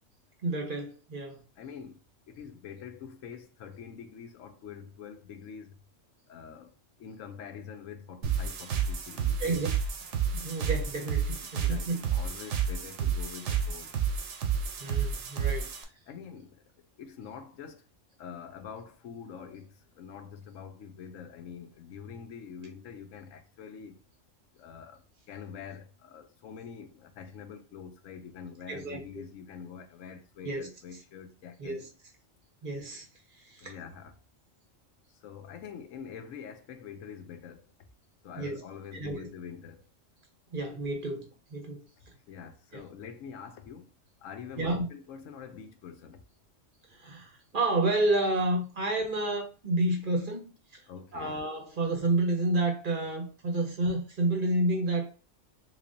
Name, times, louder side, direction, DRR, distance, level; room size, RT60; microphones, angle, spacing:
voice 1, 0.4-1.4 9.4-9.7 10.3-12.0 14.8-15.7 28.7-29.0 30.4-30.6 31.6-31.8 32.6-33.1 33.5-33.7 38.4-38.6 38.9-39.3 40.5-41.8 42.7-42.8 44.6-44.9 47.0-50.8 51.1-55.1, right 2 dB, 50° right, 0.8 m, -30 dB
voice 2, 1.6-2.0 2.3-5.8 6.3-9.6 11.4-13.9 15.5-15.6 16.1-16.6 17.0-17.9 18.2-24.0 24.5-31.8 33.6-34.1 35.1-37.7 38.2-39.9 42.3-43.9 44.2-46.2 50.9-51.5, left 7 dB, 80° left, 1.0 m, -45 dB
sound 1, 8.2-15.8, right 7 dB, 70° right, 1.0 m, -30 dB
3.6 x 3.2 x 2.6 m
omnidirectional pair, 1.3 m